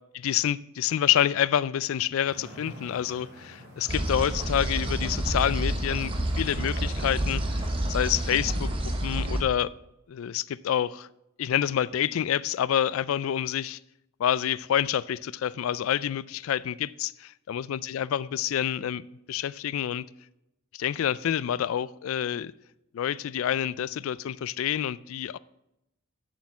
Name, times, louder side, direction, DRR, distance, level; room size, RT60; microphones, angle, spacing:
voice 1, 0.2-9.7 10.1-11.1 11.4-13.8 14.2-19.0 19.3-20.1 20.7-22.5 22.9-25.4, left 10 dB, 75° left, 0.3 m, -28 dB
sound 1, 2.2-8.4, equal, 55° right, 3.1 m, -47 dB
sound 2, 3.9-9.4, right 1 dB, 25° right, 1.0 m, -29 dB
7.9 x 6.4 x 7.2 m
head